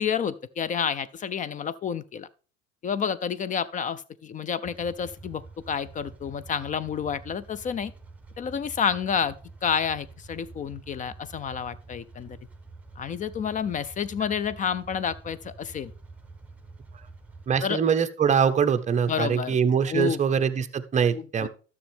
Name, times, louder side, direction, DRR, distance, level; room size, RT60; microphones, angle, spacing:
voice 1, 0.0-2.3 2.8-7.9 8.4-9.4 9.6-12.4 13.0-15.9 17.6-17.8 19.1-19.6 19.9-20.2 21.1-21.5, left 7 dB, 20° left, 0.4 m, -29 dB
sound 1, 4.6-17.6, right 3 dB, 5° right, 1.1 m, -47 dB
voice 2, 17.5-21.5, right 7 dB, 20° right, 0.7 m, -23 dB
12.5 x 6.5 x 3.4 m
hypercardioid pair, 75°, 38 cm